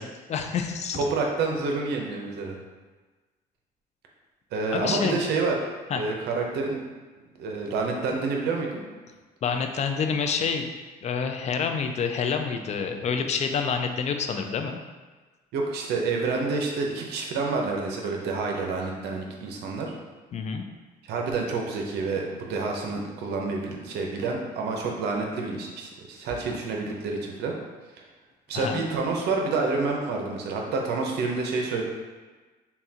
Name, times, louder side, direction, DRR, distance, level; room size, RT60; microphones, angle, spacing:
voice 1, 0.0-1.0 4.7-5.3 5.9-6.0 9.4-10.7 11.0-14.8 20.3-20.6 28.5-28.8, left 6 dB, 40° left, 5 dB, 0.4 m, -28 dB
voice 2, 1.0-2.6 4.5-5.5 5.9-6.8 7.4-8.8 15.5-19.9 21.1-27.5 28.5-31.8, right 4 dB, 75° right, 1 dB, 0.7 m, -28 dB
5.6 x 2.3 x 2.8 m, 1.3 s
cardioid pair, 110°, 17 cm